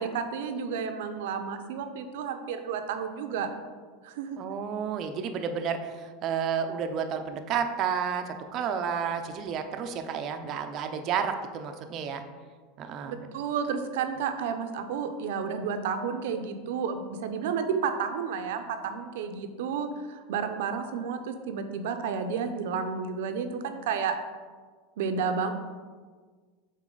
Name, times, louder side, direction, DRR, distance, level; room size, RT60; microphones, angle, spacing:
voice 1, 0.0-3.5 4.0-4.4 13.1-24.2 25.0-25.5, right 6 dB, 75° right, 7 dB, 0.6 m, -31 dB
voice 2, 4.4-12.2 12.8-13.3, right 7 dB, 35° right, 7 dB, 0.5 m, -31 dB
7.3 x 4.0 x 3.9 m, 1.5 s
supercardioid pair, 155°, 0 cm